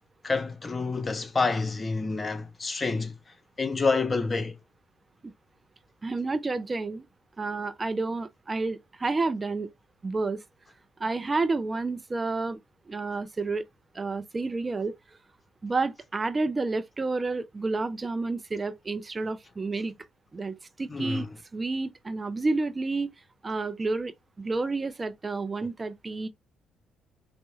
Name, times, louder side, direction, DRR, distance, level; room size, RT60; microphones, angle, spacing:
voice 1, 0.2-3.1 3.6-4.6 20.9-21.3, left 4 dB, 30° left, 0.7 m, -28 dB
voice 2, 6.0-7.1 7.4-9.7 10.0-10.4 11.0-12.6 12.9-13.6 13.9-15.0 15.6-19.9 20.3-21.3 21.5-23.1 23.4-26.3, right 3 dB, 30° right, 0.4 m, -30 dB
4.4 x 2.1 x 2.8 m
hypercardioid pair, 45°, 0 cm